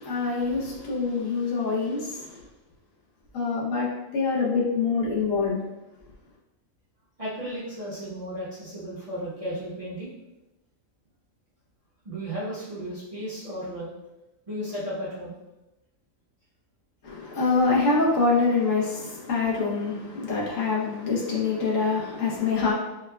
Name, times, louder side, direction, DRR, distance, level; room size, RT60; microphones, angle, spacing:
voice 1, 0.0-2.4 3.3-5.6 17.0-22.7, left 4 dB, 75° left, -4 dB, 1.2 m, -25 dB
voice 2, 7.2-10.1 12.0-13.9 14.5-15.3, equal, 30° right, -9 dB, 0.8 m, -34 dB
4.6 x 2.2 x 2.2 m, 0.96 s
omnidirectional pair, 1.4 m